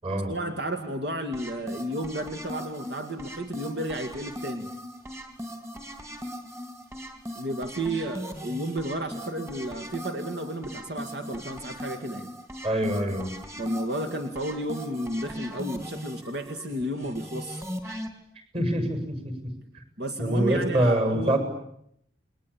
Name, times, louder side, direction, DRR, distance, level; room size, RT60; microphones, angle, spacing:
voice 1, 0.3-4.7 7.3-12.3 13.6-17.6 20.0-21.4, right 1 dB, 60° right, 6 dB, 2.3 m, -32 dB
sound 1, 1.3-18.1, equal, 15° right, 3.5 m, -39 dB
voice 2, 12.6-13.3 18.5-19.4 20.2-21.4, right 1 dB, 30° right, 7 dB, 7.6 m, -25 dB
30.0 x 22.5 x 8.8 m, 0.72 s
head